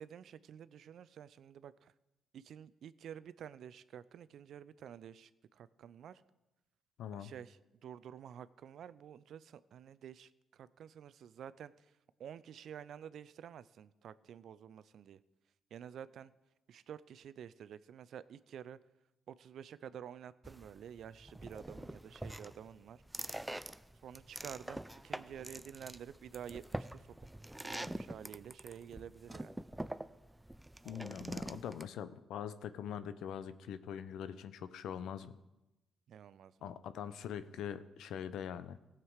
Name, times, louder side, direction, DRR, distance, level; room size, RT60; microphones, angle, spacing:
voice 1, 0.0-1.9 2.3-6.2 7.1-11.9 12.2-15.2 15.7-16.3 16.7-18.8 19.3-23.0 24.0-27.3 27.6-29.6 36.1-36.7, right 9 dB, 70° right, 16 dB, 0.4 m, -50 dB
voice 2, 7.0-7.3 30.8-35.4 36.6-38.8, left 9 dB, 75° left, 13 dB, 0.6 m, -43 dB
sound 1, 20.4-31.9, right 1 dB, 10° right, 0.5 m, -45 dB
16.5 x 7.4 x 4.8 m, 0.99 s
supercardioid pair, 60°, 0 cm